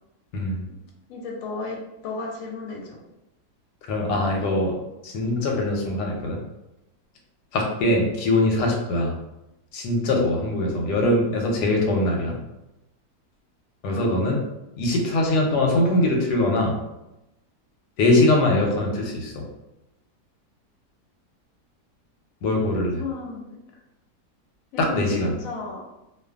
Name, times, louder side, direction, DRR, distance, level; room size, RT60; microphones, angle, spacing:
voice 1, 1.1-1.8 2.0-3.0 13.9-14.1 23.0-23.8 24.7-25.8, left 3 dB, 70° left, -1 dB, 0.9 m, -35 dB
voice 2, 3.9-4.8 5.0-6.4 7.5-9.1 9.7-12.4 13.8-14.4 14.8-16.8 18.0-19.4 22.4-23.0 24.8-25.3, left 1 dB, 90° left, 1 dB, 1.2 m, -22 dB
2.5 x 2.4 x 2.3 m, 0.94 s
omnidirectional pair, 1.7 m